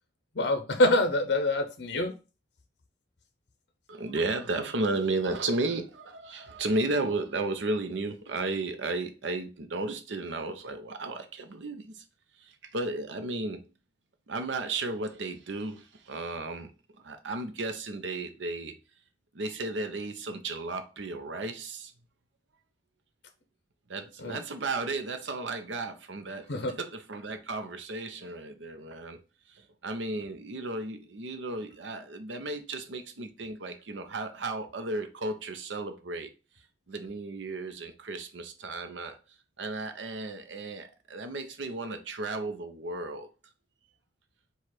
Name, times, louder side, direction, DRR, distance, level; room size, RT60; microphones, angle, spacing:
voice 1, 0.4-2.1 24.2-24.4 26.5-26.7, left 1 dB, 65° left, 0.7 m, -25 dB
voice 2, 3.9-12.0 12.4-13.7 14.3-16.7 17.0-18.7 19.3-21.9 23.9-26.5 26.8-29.2 29.5-36.3 36.9-39.2 39.6-43.3, right 2 dB, 90° right, 0.7 m, -34 dB
4.9 x 2.4 x 4.3 m
head